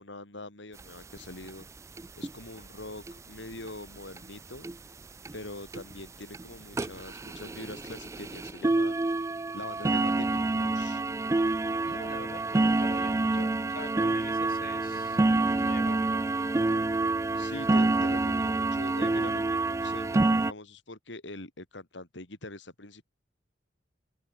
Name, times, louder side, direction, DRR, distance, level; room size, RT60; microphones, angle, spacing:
voice 1, 0.0-5.0 5.3-9.0 9.5-11.1 17.3-23.0, left 2 dB, 70° left, 3.3 m, -44 dB
sound 1, 0.8-0.9 1.2-1.3 1.4-1.6 2.0-2.3 3.1-3.2 3.7-3.8 4.2-4.3 4.6-4.7 5.3-5.4 5.7-5.9 6.3-6.4 6.7-20.5, right 2 dB, 15° right, 0.3 m, -27 dB
voice 2, 11.8-16.0, left 3 dB, 50° left, 6.6 m, -45 dB
head